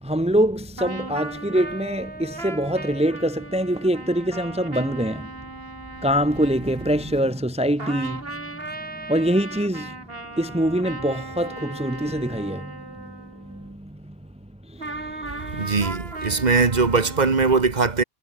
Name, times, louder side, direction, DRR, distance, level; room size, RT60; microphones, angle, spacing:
voice 1, 0.0-5.3 6.0-10.1 10.4-14.1 14.7-15.6, equal, 5° right, 1.2 m, -25 dB
sound 1, 0.8-7.5 7.8-13.7 14.8-17.2, right 2 dB, 55° right, 3.8 m, -37 dB
voice 2, 15.3-18.0, right 4 dB, 40° right, 1.5 m, -21 dB
omnidirectional pair, 1.2 m